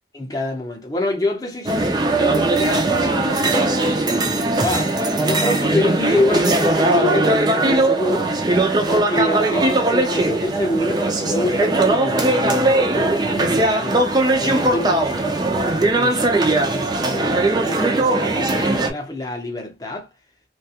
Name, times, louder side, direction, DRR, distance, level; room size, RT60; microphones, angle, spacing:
voice 1, 0.1-3.4 4.6-4.9 5.2-8.4 8.8-14.1 14.4-15.3 16.0-20.1, left 1 dB, 20° left, 0.7 m, -26 dB
sound 1, 1.7-18.9, right 2 dB, 25° right, 0.4 m, -19 dB
2.8 x 2.3 x 2.8 m
head